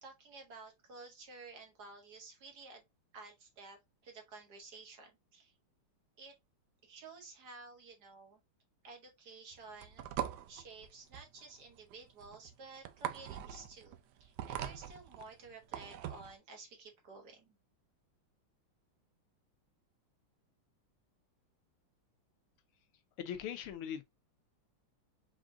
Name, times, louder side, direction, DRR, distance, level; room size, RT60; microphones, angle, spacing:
voice 1, 0.0-2.8 3.1-5.5 6.2-6.3 6.8-8.4 8.8-10.0 10.5-17.6, right 4 dB, 55° right, 1.6 m, -53 dB
sound 1, 9.5-16.4, right 11 dB, 75° right, 1.0 m, -42 dB
voice 2, 23.2-24.0, left 9 dB, 85° left, 1.7 m, -40 dB
5.0 x 3.5 x 2.6 m
omnidirectional pair, 2.4 m